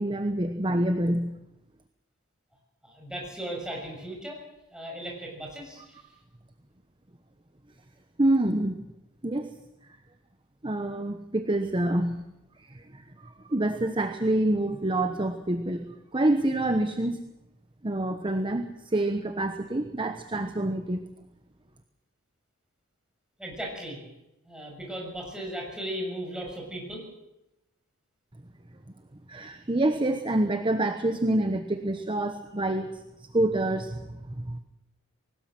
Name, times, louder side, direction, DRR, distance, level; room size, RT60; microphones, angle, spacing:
voice 1, 0.0-1.3 8.2-8.8 9.2-9.5 10.6-12.2 12.6-13.0 13.4-17.3 17.8-21.1 29.3-33.0 33.3-34.6, right 1 dB, 25° right, 7 dB, 1.0 m, -27 dB
voice 2, 2.8-4.4 4.7-6.0 23.4-24.0 24.4-27.0, right 1 dB, 5° right, -1 dB, 6.5 m, -36 dB
21.0 x 18.5 x 7.7 m, 0.92 s
head